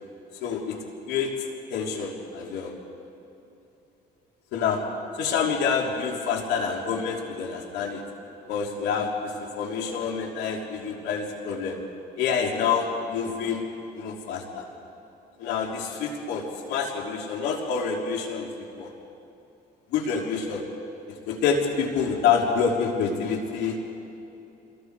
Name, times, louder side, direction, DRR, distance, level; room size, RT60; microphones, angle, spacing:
voice 1, 0.4-0.8 1.1-1.3 1.7-2.7 4.5-4.8 5.1-8.0 8.5-11.8 12.2-13.6 13.9-14.7 15.4-18.9 19.9-20.6 21.3-23.8, left 6 dB, 90° left, 0 dB, 3.2 m, -27 dB
28.5 x 21.0 x 4.8 m, 2.8 s
cardioid pair, 110°, 17 cm